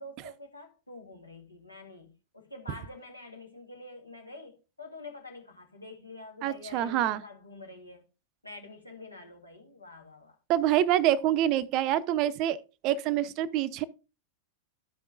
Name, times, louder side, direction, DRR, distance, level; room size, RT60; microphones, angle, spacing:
voice 1, 0.0-8.0 8.4-10.4, left 2 dB, 85° left, 1.4 m, -47 dB
voice 2, 6.4-7.2 10.5-12.6 12.8-13.8, right 12 dB, 40° right, 0.5 m, -26 dB
13.0 x 5.2 x 2.5 m
figure-of-eight pair, 90°, 0 cm